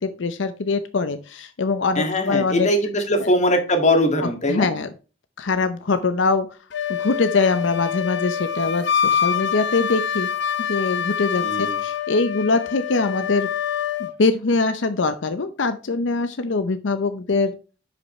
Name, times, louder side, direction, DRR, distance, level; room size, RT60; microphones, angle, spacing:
voice 1, 0.0-2.7 3.2-3.3 4.2-4.9 5.4-6.5 7.0-10.3 10.7-13.5 14.0-17.5, left 3 dB, 85° left, 10 dB, 0.7 m, -23 dB
voice 2, 2.0-4.7 11.4-11.8, left 1 dB, 40° left, 5 dB, 1.9 m, -21 dB
Wind instrument woodwind instrument, 6.7-14.1, left 8 dB, 70° left, 1.0 m, -25 dB
10.5 x 5.3 x 3.1 m, 0.36 s
head